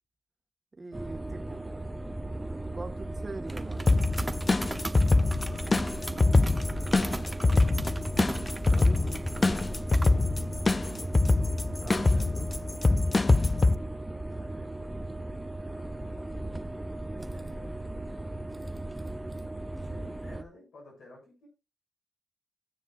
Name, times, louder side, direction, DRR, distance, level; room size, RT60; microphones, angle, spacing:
voice 1, 0.7-1.8 2.7-3.9 8.5-9.1 11.8-12.5, right 3 dB, 35° right, 1.7 m, -43 dB
sound 1, 0.9-20.4, right 2 dB, 20° right, 0.9 m, -36 dB
sound 2, 3.9-13.7, left 3 dB, 35° left, 0.5 m, -24 dB
voice 2, 5.4-7.1 12.5-13.8 14.2-15.4 15.6-18.3 19.8-21.5, left 2 dB, 90° left, 7.7 m, -55 dB
15.5 x 9.7 x 2.6 m
cardioid pair, 75°, 0 cm